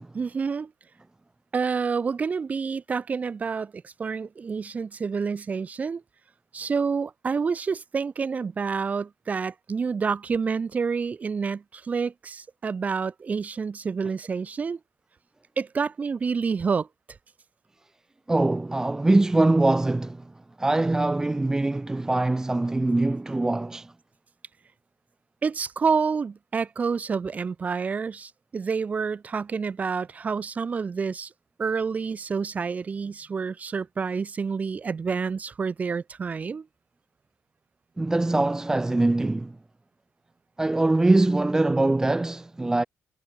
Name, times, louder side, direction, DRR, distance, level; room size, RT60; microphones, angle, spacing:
voice 1, 0.1-0.7 1.5-6.0 6.5-14.8 15.6-16.9 25.4-31.3 31.6-36.7, right 5 dB, 30° right, 1.9 m, -28 dB
voice 2, 18.3-20.2 20.6-23.9 38.0-39.5 40.6-42.8, right 2 dB, 10° right, 0.7 m, -22 dB
cardioid pair, 140°, 5 cm